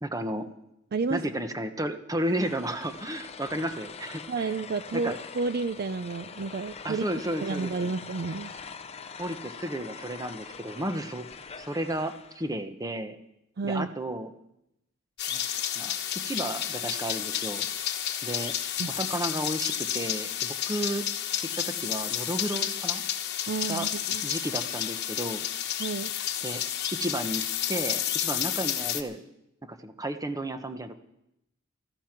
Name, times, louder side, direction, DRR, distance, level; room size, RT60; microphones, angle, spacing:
voice 1, 0.0-0.5 1.1-4.5 4.9-5.2 6.8-7.9 9.2-11.2 11.6-13.2 13.6-14.3 15.3-15.4 15.7-16.0 16.2-17.7 18.2-18.5 18.9-21.0 21.6-23.0 23.7-23.9 24.2-25.4 26.4-26.6 26.9-27.4 27.7-29.2 29.6-31.0, right 1 dB, 15° right, 8 dB, 1.0 m, -33 dB
voice 2, 0.9-1.2 4.3-7.1 7.4-8.5 13.6-13.9 18.8-19.0 23.5-24.3 25.8-26.1, right 4 dB, 50° right, 12 dB, 0.5 m, -31 dB
sound 1, 2.2-12.5, left 5 dB, 30° left, 0.6 m, -44 dB
sound 2, 15.2-29.0, left 10 dB, 55° left, 1.2 m, -31 dB
15.5 x 14.0 x 6.0 m, 0.86 s
head